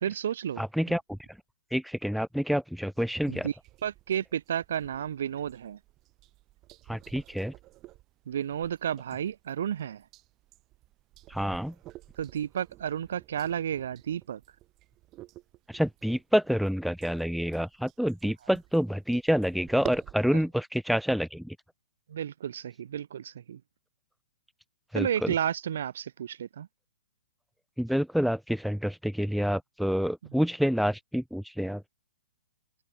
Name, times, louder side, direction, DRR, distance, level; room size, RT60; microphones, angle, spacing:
voice 1, 0.0-1.0 3.3-5.8 8.3-10.0 12.2-14.4 22.1-23.6 24.9-26.7 30.2-30.4, right 9 dB, 65° right, 0.7 m, -32 dB
voice 2, 0.6-1.0 1.7-3.5 6.9-7.5 11.3-11.7 15.7-21.6 24.9-25.3 27.8-31.8, equal, ahead, 0.4 m, -28 dB
sound 1, 2.9-20.1, right 17 dB, 30° right, 5.8 m, -51 dB
open air
hypercardioid pair, 125°, 0 cm